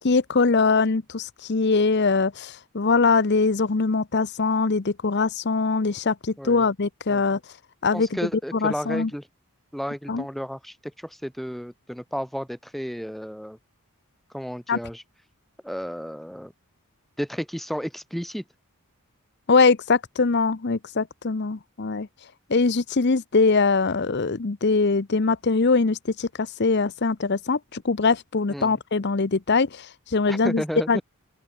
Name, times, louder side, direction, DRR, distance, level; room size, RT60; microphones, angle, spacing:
voice 1, 0.0-7.4 7.8-9.1 10.1-10.2 14.7-14.8 19.5-22.1 22.5-31.0, left 4 dB, 50° left, 0.7 m, -22 dB
voice 2, 7.9-9.2 9.7-13.6 14.3-15.0 15.6-16.5 17.2-18.4 28.5-28.8 30.3-31.0, equal, ahead, 1.3 m, -32 dB
open air
head